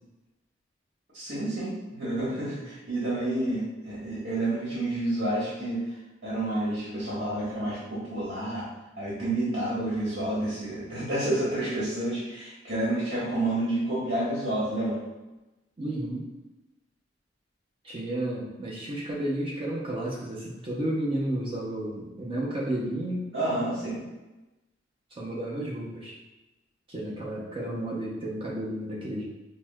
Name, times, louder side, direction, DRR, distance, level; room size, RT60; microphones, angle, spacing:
voice 1, 1.1-5.8 6.2-8.7 9.0-15.0 23.3-24.0, right 1 dB, 75° right, -8 dB, 1.4 m, -29 dB
voice 2, 15.8-16.3 17.8-23.3 25.1-26.1 26.9-29.3, right 1 dB, 30° right, -4 dB, 0.6 m, -32 dB
5.9 x 2.1 x 2.3 m, 1.1 s
head